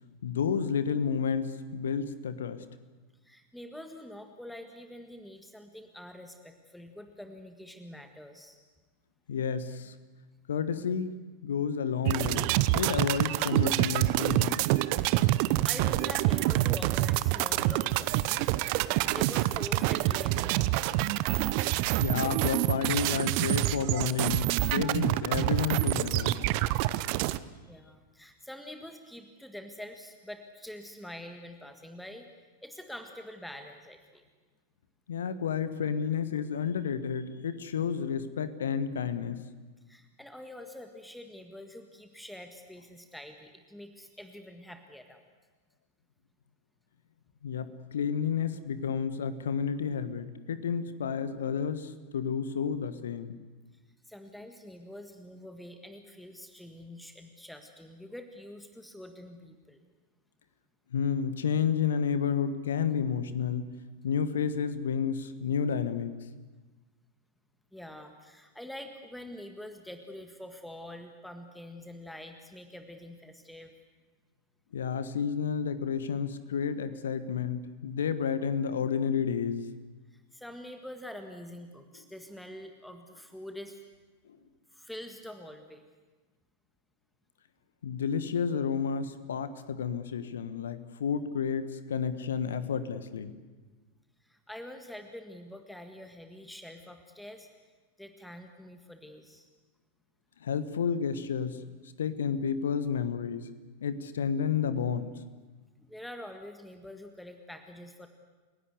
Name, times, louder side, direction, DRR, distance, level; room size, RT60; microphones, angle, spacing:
voice 1, 0.2-2.6 9.3-10.0 10.5-11.1 11.4-14.8 22.0-26.4 35.1-39.4 47.4-53.4 60.9-63.7 64.0-66.1 74.7-79.7 87.8-93.3 100.4-101.6 102.0-103.5 103.8-105.1, left 7 dB, 65° left, 13 dB, 1.4 m, -31 dB
voice 2, 3.2-8.6 15.4-18.5 19.1-20.8 27.7-32.3 32.6-34.2 39.9-45.2 54.1-59.8 67.7-73.7 80.1-83.8 84.7-85.8 94.2-97.5 98.0-99.5 105.8-108.1, left 1 dB, ahead, 6 dB, 1.7 m, -45 dB
sound 1, 12.1-27.4, right 16 dB, 45° right, 0.7 m, -27 dB
29.5 x 17.0 x 8.1 m, 1.3 s
figure-of-eight pair, 90°, 0 cm